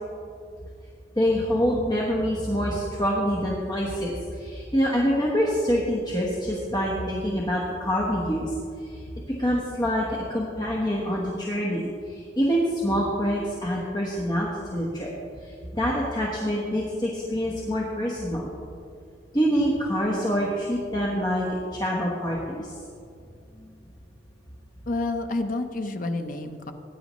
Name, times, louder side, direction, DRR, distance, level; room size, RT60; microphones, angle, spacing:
voice 1, 1.2-9.0 9.4-18.5 19.3-22.7 23.5-23.7, equal, 25° left, -3 dB, 1.2 m, -26 dB
voice 2, 24.9-26.7, left 2 dB, 50° left, 6 dB, 0.8 m, -29 dB
18.5 x 9.7 x 3.1 m, 2.4 s
head